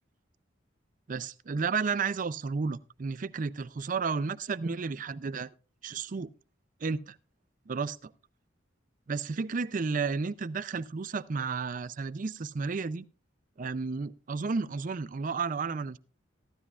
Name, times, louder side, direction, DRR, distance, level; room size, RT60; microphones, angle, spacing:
voice 1, 1.1-5.5 5.8-6.3 6.8-7.2 7.7-8.1 9.1-13.0 13.6-16.0, right 4 dB, 45° right, 0.4 m, -32 dB
14.5 x 12.5 x 2.4 m
head